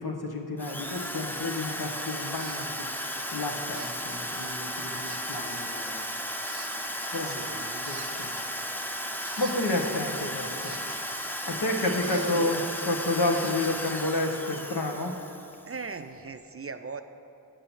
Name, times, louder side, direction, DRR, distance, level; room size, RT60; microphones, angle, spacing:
voice 1, 0.0-6.1 6.3-6.6 7.1-9.0 9.4-10.8 11.5-15.2, left 2 dB, 75° left, 2 dB, 1.1 m, -31 dB
Drill, 0.6-15.8, equal, 5° left, 0.6 m, -35 dB
sound 1, 2.4-2.6 2.9-3.3 3.7-4.6 5.1-6.1 6.5-7.6 7.8-11.7 12.0-14.4, right 5 dB, 80° right, 0.8 m, -49 dB
voice 2, 7.2-7.9 9.9-10.0 11.8-12.6 15.7-17.0, right 5 dB, 35° right, 9 dB, 0.4 m, -39 dB
7.6 x 5.8 x 7.1 m, 2.6 s
cardioid pair, 40°, 39 cm